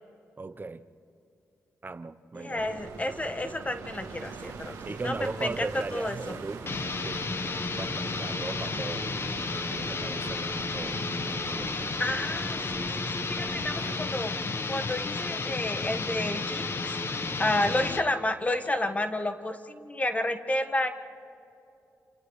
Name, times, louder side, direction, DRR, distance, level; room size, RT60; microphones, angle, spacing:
voice 1, 0.4-0.9 1.8-2.8 4.9-6.7 7.0-9.2 9.5-11.7 13.8-14.0 17.5-17.8, right 3 dB, 35° right, 12 dB, 0.8 m, -39 dB
voice 2, 2.4-5.1 5.4-5.7 5.9-6.4 12.0-14.3 14.7-17.0 17.4-20.9, left 1 dB, 25° left, 7 dB, 1.5 m, -31 dB
sound 1, 2.5-14.0, right 4 dB, 80° right, 2.1 m, -43 dB
sound 2, 6.6-18.1, left 3 dB, 45° left, 1.1 m, -32 dB
30.0 x 28.5 x 3.2 m, 2.8 s
cardioid pair, 60°, 6 cm